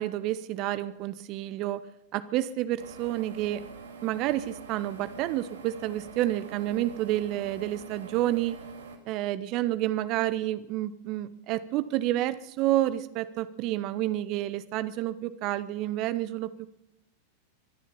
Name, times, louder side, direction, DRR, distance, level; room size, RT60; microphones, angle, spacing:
voice 1, 0.0-1.8 2.1-3.7 4.0-8.6 9.1-16.7, right 14 dB, 40° right, 15 dB, 0.7 m, -29 dB
sound 1, 2.8-9.0, right 4 dB, 65° right, 2.2 m, -45 dB
24.5 x 10.5 x 5.5 m, 0.79 s
figure-of-eight pair, 90°, 0 cm